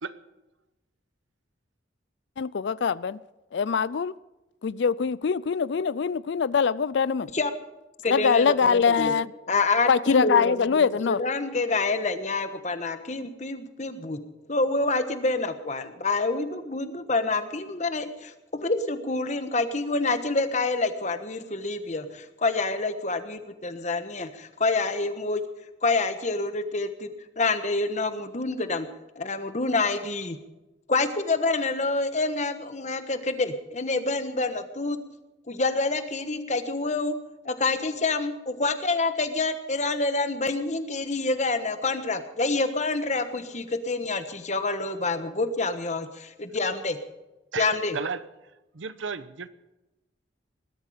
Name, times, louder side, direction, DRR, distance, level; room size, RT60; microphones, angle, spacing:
voice 1, 2.4-3.2 3.5-4.1 4.6-7.3 8.1-9.3 9.9-11.2, left 6 dB, 65° left, 0.4 m, -23 dB
voice 2, 8.0-9.1 9.5-10.5 11.1-14.2 14.5-25.4 25.8-28.9 29.1-30.4 30.9-35.0 35.5-37.2 37.4-47.0 47.6-48.0, left 3 dB, 40° left, 1.3 m, -27 dB
voice 3, 47.5-48.2 48.7-49.5, right 5 dB, 85° right, 0.9 m, -33 dB
20.0 x 12.5 x 5.1 m
head